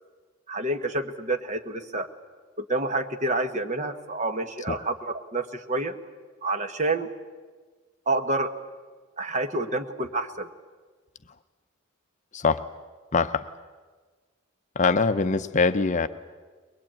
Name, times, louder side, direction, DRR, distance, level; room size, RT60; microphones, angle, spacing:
voice 1, 0.5-2.1 2.6-5.9 6.4-7.1 8.1-8.5 9.2-10.5, right 2 dB, 35° right, 7 dB, 1.4 m, -28 dB
voice 2, 13.1-13.5 14.8-16.1, left 4 dB, 35° left, 10 dB, 0.6 m, -23 dB
22.5 x 21.0 x 8.9 m, 1.4 s
head